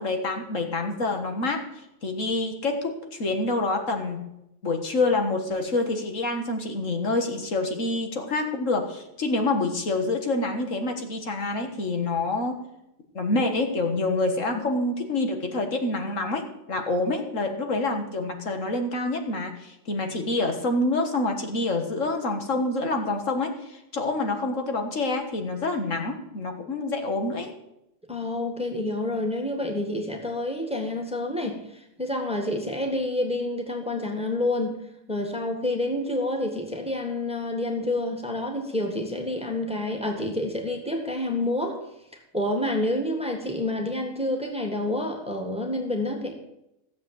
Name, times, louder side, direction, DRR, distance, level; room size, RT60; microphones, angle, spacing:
voice 1, 0.0-1.7 2.0-4.2 4.6-12.6 13.1-27.5, left 2 dB, 65° left, 4 dB, 2.0 m, -27 dB
voice 2, 28.1-34.8 35.1-41.8 42.3-46.3, left 1 dB, 5° right, 2 dB, 1.8 m, -28 dB
15.5 x 7.5 x 7.7 m, 0.85 s
omnidirectional pair, 1.4 m